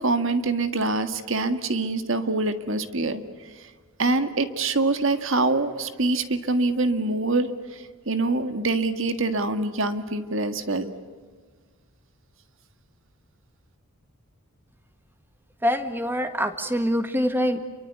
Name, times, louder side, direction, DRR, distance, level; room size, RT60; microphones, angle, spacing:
voice 1, 0.0-3.2 3.6-3.7 4.0-10.9, right 2 dB, 60° right, 10 dB, 1.8 m, -25 dB
voice 2, 15.6-17.6, equal, 10° right, 8 dB, 1.6 m, -24 dB
29.0 x 23.5 x 8.3 m, 1.5 s
head